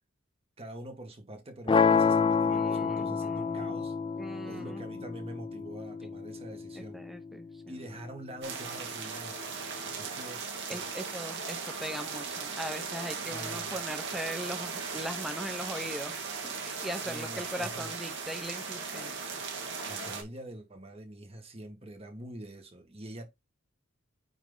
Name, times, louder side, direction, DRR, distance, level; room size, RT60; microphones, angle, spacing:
voice 1, 0.6-3.9 4.5-7.0 7.7-11.1 13.2-13.9 17.0-17.9 19.9-23.2, right 1 dB, 30° right, 1.8 m, -45 dB
sound 1, 1.7-7.7, left 5 dB, 25° left, 0.4 m, -29 dB
voice 2, 2.5-3.8 4.2-4.8 6.8-7.7 10.7-19.1, equal, ahead, 1.0 m, -40 dB
sound 2, 8.4-20.2, right 5 dB, 60° right, 2.2 m, -37 dB
8.8 x 3.6 x 4.0 m
head